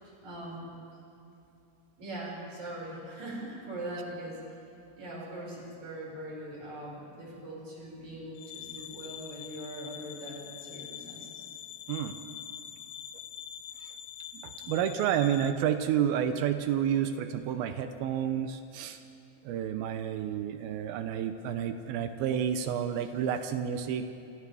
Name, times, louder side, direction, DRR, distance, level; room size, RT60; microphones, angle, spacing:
voice 1, 0.2-0.7 2.0-4.4 5.0-11.4, right 1 dB, 50° right, -5 dB, 7.1 m, -41 dB
sound 1, 8.4-15.5, left 9 dB, 70° left, 2.0 m, -44 dB
voice 2, 14.3-19.0 19.4-24.3, right 9 dB, 90° right, 8 dB, 2.7 m, -30 dB
28.0 x 27.5 x 3.5 m, 2.7 s
omnidirectional pair, 4.2 m